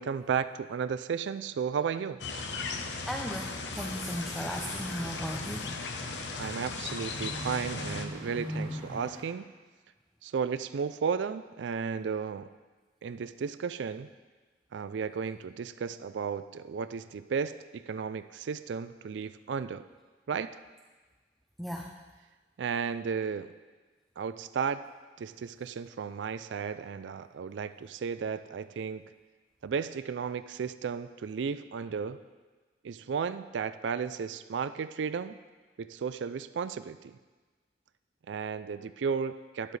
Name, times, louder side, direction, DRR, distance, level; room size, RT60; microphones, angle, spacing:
voice 1, 0.0-2.2 6.3-9.5 10.2-12.5 13.0-14.1 14.7-19.8 20.3-20.6 22.6-23.5 24.2-24.8 25.2-29.0 29.6-32.2 32.8-35.4 35.8-37.2 38.3-39.8, right 6 dB, 85° right, 13 dB, 0.4 m, -34 dB
sound 1, 2.2-8.0, left 4 dB, 80° left, 0.9 m, -37 dB
voice 2, 3.1-5.7 21.6-21.9, equal, ahead, 1 dB, 0.5 m, -36 dB
sound 2, 3.8-9.2, equal, 30° right, 2.4 m, -42 dB
12.5 x 11.5 x 3.3 m, 1.3 s
head